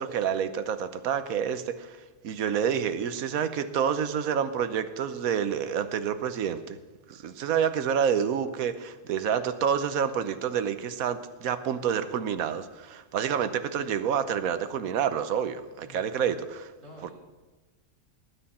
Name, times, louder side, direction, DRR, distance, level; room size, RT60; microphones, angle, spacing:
voice 1, 0.0-2.0 2.2-6.8 7.1-16.7 17.0-17.1, right 8 dB, 85° right, 11 dB, 1.3 m, -28 dB
voice 2, 15.8-16.1 16.8-17.1, equal, 50° right, -5 dB, 4.3 m, -48 dB
18.5 x 9.9 x 4.3 m, 1.2 s
omnidirectional pair, 1.5 m